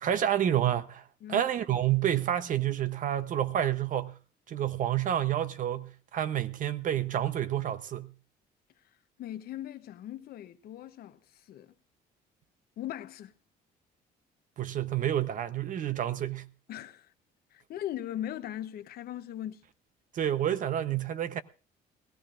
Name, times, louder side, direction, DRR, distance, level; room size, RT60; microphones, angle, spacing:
voice 1, 0.0-1.0 1.3-4.1 4.5-8.1 14.6-16.4 20.1-21.4, right 11 dB, 50° right, 0.8 m, -29 dB
voice 2, 9.2-11.2 11.5-11.7 12.8-13.3 16.7-17.1 17.5-19.6, left 12 dB, 65° left, 0.8 m, -39 dB
19.5 x 15.0 x 2.5 m
cardioid pair, 110°, 17 cm